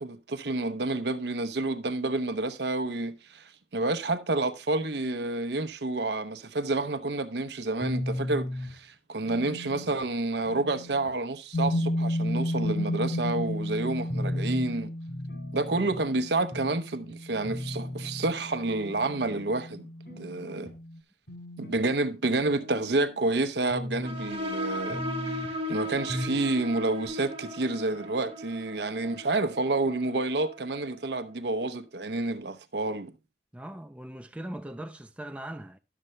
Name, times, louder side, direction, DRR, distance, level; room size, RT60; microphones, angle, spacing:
voice 1, 0.0-14.9 15.5-19.9 20.2-20.7 21.6-33.1, right 2 dB, 75° right, 0.7 m, -29 dB
sound 1, 7.8-8.8 9.3-10.0 10.4-11.1 11.7-11.9 12.3-12.4 12.6-13.6 14.1-14.7 15.1-16.1 16.5-16.7 17.1-17.2 17.4-18.3 18.9-19.5 20.0-20.7 21.3-21.8 22.3-23.3 23.7-24.3 24.9-25.5 26.1-26.4 26.7-26.8 27.0-27.1, left 1 dB, 75° left, 3.6 m, -36 dB
sound 2, 11.5-21.0, left 1 dB, 55° left, 0.6 m, -33 dB
sound 3, 24.0-31.3, equal, 35° right, 0.9 m, -37 dB
voice 2, 33.5-35.8, right 1 dB, 5° right, 0.4 m, -40 dB
11.0 x 6.6 x 3.1 m
head